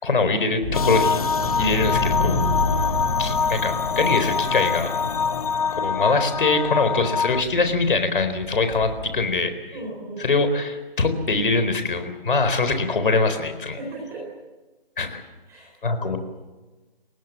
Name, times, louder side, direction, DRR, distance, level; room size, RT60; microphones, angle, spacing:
voice 1, 0.0-1.2 1.6-2.4 3.2-4.9 5.7-9.8 10.2-13.8 15.0-15.2 15.8-16.2, left 3 dB, 60° left, 9 dB, 4.2 m, -23 dB
sound 1, 0.6-9.2, left 2 dB, 10° left, 5.1 m, -30 dB
sound 2, 0.7-7.4, left 5 dB, 40° left, 0.9 m, -24 dB
voice 2, 1.5-1.9 9.7-10.2 13.7-14.3 15.5-15.7 16.0-16.2, right 1 dB, 10° right, -3 dB, 4.2 m, -35 dB
29.5 x 17.5 x 7.5 m, 1.2 s
figure-of-eight pair, 160°, 29 cm